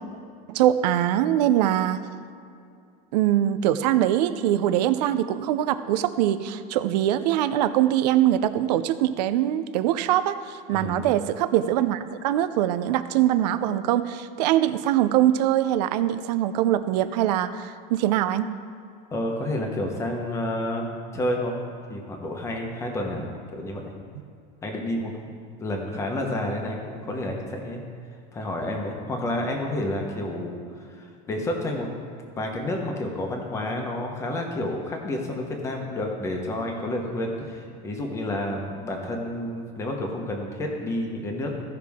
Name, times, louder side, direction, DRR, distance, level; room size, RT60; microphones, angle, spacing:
voice 1, 0.5-2.0 3.1-18.5, right 12 dB, 85° right, 12 dB, 0.5 m, -23 dB
voice 2, 10.7-11.0 19.1-21.6 21.9-23.9 24.6-25.1 25.6-27.8 28.3-31.9 32.4-41.6, left 1 dB, 15° left, 1 dB, 1.0 m, -30 dB
15.0 x 5.7 x 3.6 m, 2.4 s
cardioid pair, 175°, 21 cm